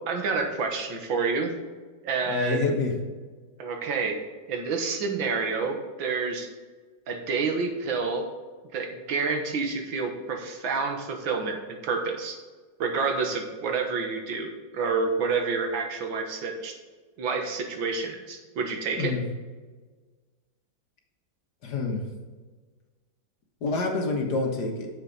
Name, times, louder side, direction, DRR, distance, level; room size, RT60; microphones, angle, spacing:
voice 1, 0.1-1.5 2.0-2.7 3.6-4.2 4.5-6.5 7.1-8.2 8.7-12.4 12.8-16.7 17.2-19.1, right 4 dB, 85° right, 3 dB, 2.0 m, -28 dB
voice 2, 2.3-2.9 19.0-19.2 21.6-22.0 23.6-24.9, left 3 dB, 60° left, 2 dB, 1.9 m, -27 dB
8.9 x 7.3 x 4.0 m, 1.4 s
omnidirectional pair, 2.1 m